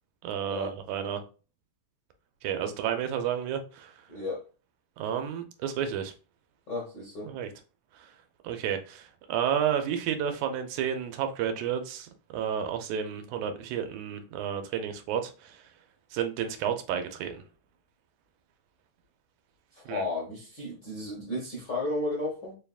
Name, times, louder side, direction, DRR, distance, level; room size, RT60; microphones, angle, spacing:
voice 1, 0.2-1.2 2.4-3.9 5.0-6.1 7.2-7.5 8.0-8.1 8.4-15.6 16.1-17.4 19.9-20.0, right 8 dB, 85° right, 2.0 m, -31 dB
voice 2, 4.1-4.4 6.7-7.3 19.7-22.6, left 2 dB, 55° left, 1.1 m, -33 dB
4.7 x 3.4 x 2.3 m
omnidirectional pair, 3.3 m